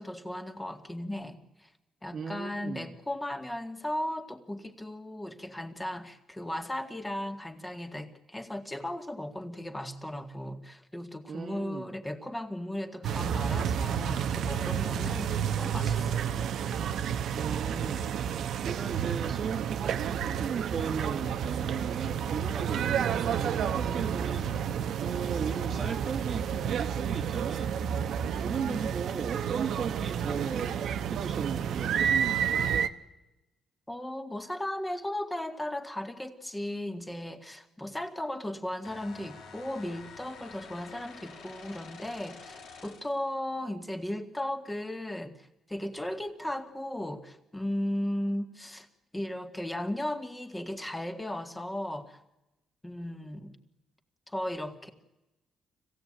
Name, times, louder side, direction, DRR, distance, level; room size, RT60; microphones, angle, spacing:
voice 1, 0.0-1.7 2.0-16.2 28.7-28.9 33.9-48.9 49.1-52.2 52.8-53.6 54.3-54.9, left 1 dB, 10° left, 6 dB, 2.1 m, -36 dB
voice 2, 2.1-2.9 11.3-11.9 17.3-18.3 18.6-27.8 28.3-32.7, right 6 dB, 55° right, 3 dB, 1.4 m, -37 dB
sound 1, 13.0-32.9, right 8 dB, 70° right, 0.9 m, -30 dB
sound 2, 38.8-43.3, left 5 dB, 80° left, 3.0 m, -48 dB
25.0 x 16.5 x 8.9 m, 1.0 s
cardioid pair, 90°, 0 cm